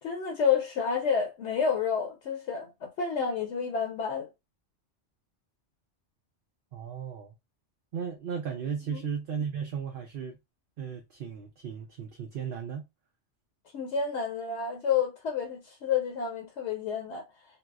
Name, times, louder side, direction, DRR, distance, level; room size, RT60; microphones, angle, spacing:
voice 1, 0.0-4.3 8.9-9.1 13.7-17.2, left 6 dB, 75° left, 1.0 m, -29 dB
voice 2, 6.7-7.3 7.9-10.4 10.8-12.8, right 7 dB, 60° right, 0.7 m, -35 dB
4.0 x 2.0 x 2.3 m
omnidirectional pair, 1.2 m